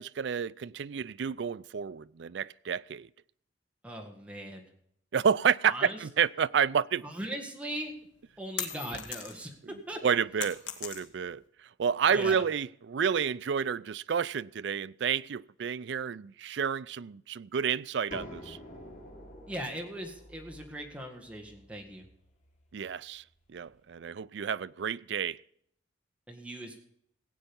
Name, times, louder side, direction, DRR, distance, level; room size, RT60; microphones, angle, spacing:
voice 1, 0.0-3.1 5.1-7.0 10.0-11.4 11.8-18.6 22.7-23.2 23.5-25.4, right 7 dB, 65° right, 0.4 m, -30 dB
voice 2, 3.8-4.7 5.7-6.0 7.0-7.9 8.4-9.5 9.9-10.1 12.1-12.4 19.5-22.1 26.3-26.8, right 1 dB, 5° right, 1.8 m, -39 dB
sound 1, 7.8-9.6 9.9-11.4, left 8 dB, 70° left, 1.8 m, -38 dB
sound 2, 18.1-23.7, left 1 dB, 40° left, 3.1 m, -49 dB
16.5 x 8.9 x 5.4 m
head